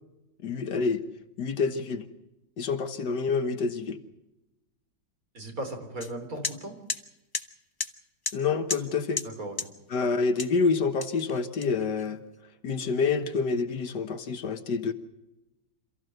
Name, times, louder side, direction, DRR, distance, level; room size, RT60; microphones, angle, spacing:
voice 1, 0.4-1.0 1.4-2.1 2.6-4.0 8.3-9.2 9.9-12.2 12.6-14.9, left 4 dB, 65° left, 9 dB, 1.8 m, -27 dB
voice 2, 5.3-6.8 9.2-9.6, right 1 dB, 45° right, 5 dB, 3.9 m, -36 dB
sound 1, 6.0-6.1 6.4-6.6 6.9-7.0 7.3-7.5 7.8-7.9 8.2-8.4 8.7-8.9 9.2-9.3 9.6-9.7 10.4-10.6 11.0-12.0, left 3 dB, 25° left, 0.5 m, -32 dB
27.5 x 15.0 x 7.8 m, 0.95 s
omnidirectional pair, 2.0 m